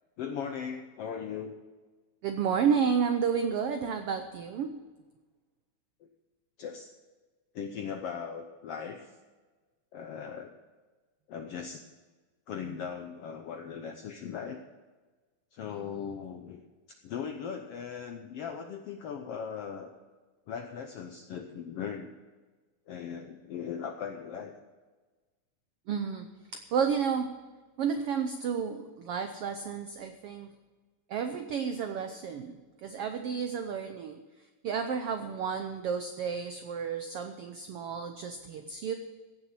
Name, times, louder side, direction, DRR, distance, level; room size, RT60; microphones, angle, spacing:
voice 1, 0.2-1.5 6.0-6.1 6.6-6.9 7.5-9.1 9.9-10.5 11.3-11.8 12.5-14.6 15.5-16.6 17.0-19.9 20.5-22.1 22.9-24.5, left 7 dB, 75° left, 5 dB, 1.4 m, -38 dB
voice 2, 2.2-4.8 25.9-26.3 26.5-27.4 27.8-30.5 31.1-34.2 34.6-38.9, right 6 dB, 80° right, 7 dB, 1.3 m, -31 dB
16.0 x 7.1 x 7.5 m, 1.3 s
omnidirectional pair, 3.6 m